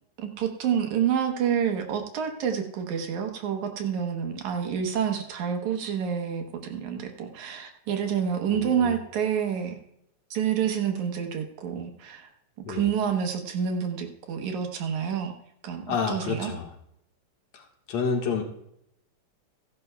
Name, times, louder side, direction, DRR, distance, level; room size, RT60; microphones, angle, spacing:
voice 1, 0.2-9.8 10.3-12.3 12.7-15.3 15.6-16.5, right 8 dB, 75° right, 4 dB, 2.6 m, -28 dB
voice 2, 8.5-9.0 12.7-12.9 15.9-16.7 17.5-18.4, left 5 dB, 65° left, 1 dB, 2.8 m, -29 dB
17.0 x 11.0 x 2.3 m, 0.76 s
omnidirectional pair, 3.4 m